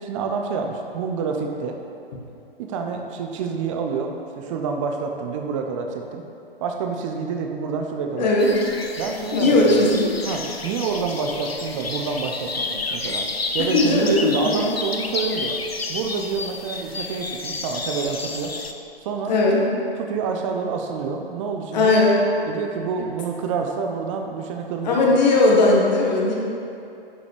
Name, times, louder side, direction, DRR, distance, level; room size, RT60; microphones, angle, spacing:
voice 1, 0.0-1.8 2.6-6.2 6.6-8.3 9.0-9.9 10.3-13.2 13.5-15.6 15.9-18.5 19.0-19.4 20.0-21.9 22.4-25.2, right 5 dB, 35° right, 3 dB, 0.8 m, -28 dB
voice 2, 8.2-8.5 9.3-10.4 13.7-14.5 19.3-19.6 21.7-22.1 24.9-26.3, left 2 dB, 45° left, -3 dB, 1.6 m, -18 dB
sound 1, 8.4-18.7, left 3 dB, 90° left, 0.7 m, -31 dB
11.0 x 6.3 x 3.4 m, 2.7 s
figure-of-eight pair, 115°, 29 cm